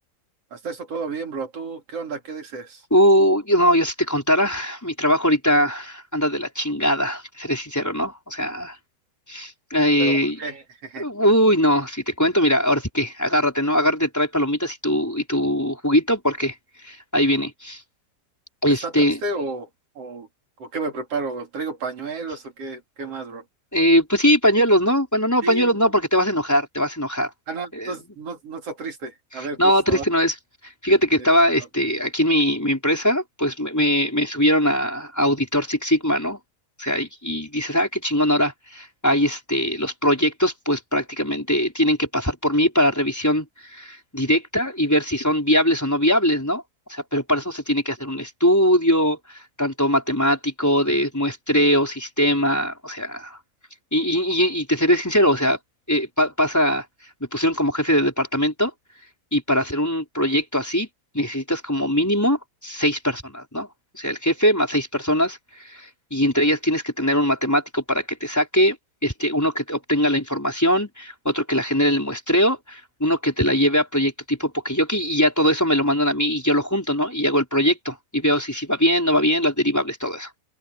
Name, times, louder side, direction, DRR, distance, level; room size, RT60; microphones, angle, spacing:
voice 1, 0.5-2.8 10.0-11.1 18.7-19.7 19.9-20.3 20.6-23.4 25.4-25.8 27.5-30.0 31.6-31.7, right 3 dB, 35° right, 3.2 m, -31 dB
voice 2, 2.9-8.8 9.3-10.4 11.0-16.5 16.8-17.8 18.6-19.2 23.7-27.3 27.7-27.9 29.3-30.3 30.8-36.4 36.8-43.5 43.7-46.6 46.9-49.2 49.6-53.4 53.9-55.6 55.9-56.8 57.3-58.7 59.3-60.9 61.1-63.7 63.9-65.4 65.6-68.8 69.0-80.3, equal, 5° left, 4.2 m, -21 dB
open air
omnidirectional pair, 5.8 m